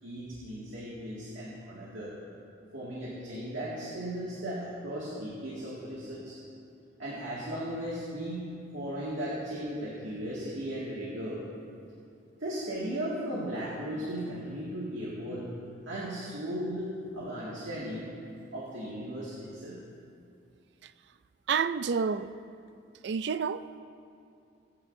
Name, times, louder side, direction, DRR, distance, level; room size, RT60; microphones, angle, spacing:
voice 1, 0.0-2.2 2.7-6.4 7.0-11.4 12.4-15.5 15.9-18.1 18.5-19.8, right 1 dB, 85° right, 2.2 m, -36 dB
voice 2, 21.5-22.3 23.0-23.8, right 6 dB, 65° right, 0.4 m, -29 dB
23.5 x 9.8 x 2.7 m
head